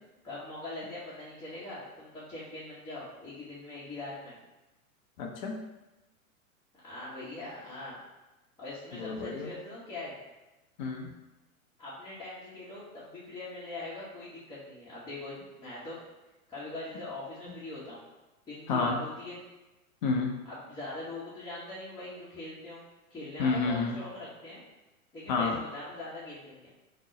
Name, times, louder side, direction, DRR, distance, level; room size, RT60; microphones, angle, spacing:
voice 1, 0.2-4.4 6.8-8.0 8.6-10.2 11.8-16.0 16.5-18.0 18.5-19.4 20.5-22.8 23.1-24.6 25.1-26.7, left 2 dB, 10° left, -11 dB, 0.8 m, -42 dB
voice 2, 5.2-5.6 9.0-9.5 10.8-11.1 18.7-19.0 20.0-20.3 23.4-24.0 25.3-25.6, left 4 dB, 35° left, 1 dB, 0.4 m, -29 dB
3.7 x 2.1 x 3.6 m, 1.0 s
hypercardioid pair, 105°, 43 cm